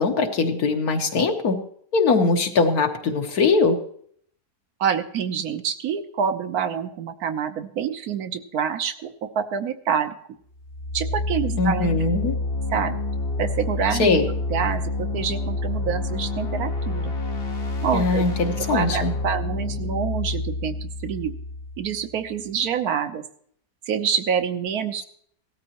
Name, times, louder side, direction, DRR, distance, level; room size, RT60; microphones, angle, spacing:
voice 1, 0.0-1.6 1.9-3.8 11.6-12.4 14.0-14.2 17.9-19.1, left 4 dB, 70° left, 4 dB, 1.7 m, -21 dB
voice 2, 4.8-10.2 10.9-12.0 12.7-13.0 13.4-14.2 14.5-17.1 17.8-18.2 18.7-21.3 21.8-23.2 23.9-25.1, right 7 dB, 70° right, 9 dB, 1.3 m, -27 dB
sound 1, 10.5-22.3, left 2 dB, 40° left, 1.3 m, -28 dB
17.0 x 13.0 x 2.9 m, 0.63 s
omnidirectional pair, 1.7 m